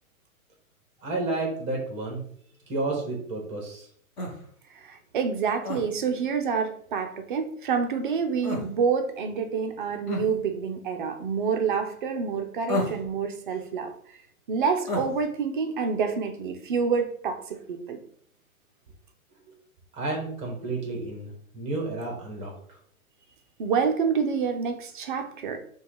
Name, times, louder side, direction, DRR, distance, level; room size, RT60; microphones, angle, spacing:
voice 1, 1.0-2.2 2.7-3.9 19.9-22.8, right 2 dB, 15° right, 1 dB, 0.9 m, -31 dB
sound 1, 4.2-4.4 5.6-5.8 8.4-8.7 10.1-10.3 12.7-13.1 14.9-15.1, left 2 dB, 20° left, 0.8 m, -29 dB
voice 2, 4.7-13.9 14.5-18.0 23.6-25.6, right 6 dB, 35° right, 5 dB, 0.5 m, -27 dB
5.6 x 2.3 x 3.9 m, 0.62 s
hypercardioid pair, 145°, 43 cm